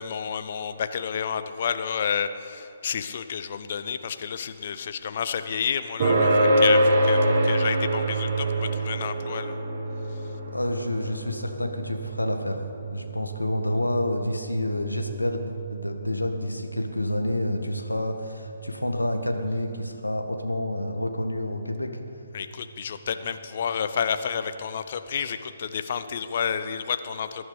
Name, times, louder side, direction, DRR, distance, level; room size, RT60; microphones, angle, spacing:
voice 1, 0.0-9.6 22.3-27.4, left 7 dB, 45° left, 11 dB, 0.8 m, -30 dB
sound 1, 6.0-20.9, right 1 dB, 35° right, 4.7 m, -27 dB
voice 2, 10.5-12.6 12.9-22.0, left 1 dB, 80° left, 5 dB, 1.6 m, -28 dB
21.0 x 11.0 x 5.3 m, 2.8 s
figure-of-eight pair, 135°, 0 cm